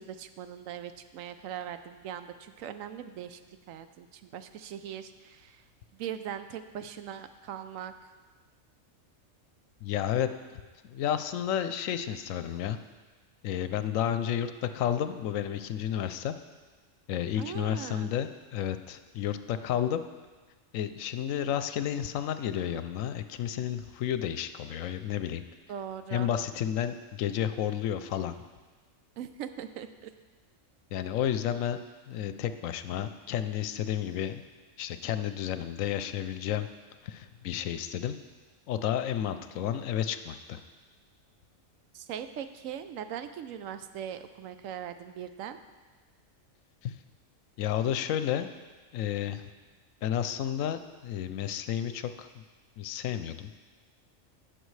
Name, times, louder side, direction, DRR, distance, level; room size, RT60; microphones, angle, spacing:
voice 1, 0.0-3.4 3.7-5.6 5.9-7.9 17.4-18.1 25.7-26.3 29.2-30.1 41.9-45.6, right 9 dB, 80° right, 10 dB, 1.0 m, -40 dB
voice 2, 9.8-10.3 10.8-12.8 13.4-16.3 17.1-20.0 20.7-25.4 26.1-28.3 30.9-31.8 32.1-34.4 34.8-36.7 37.0-38.2 38.7-40.6 46.8-46.9 47.6-48.5 48.9-49.4 50.0-52.4 52.8-53.5, left 10 dB, 80° left, 11 dB, 0.9 m, -31 dB
17.0 x 6.4 x 3.2 m, 1.3 s
omnidirectional pair, 1.4 m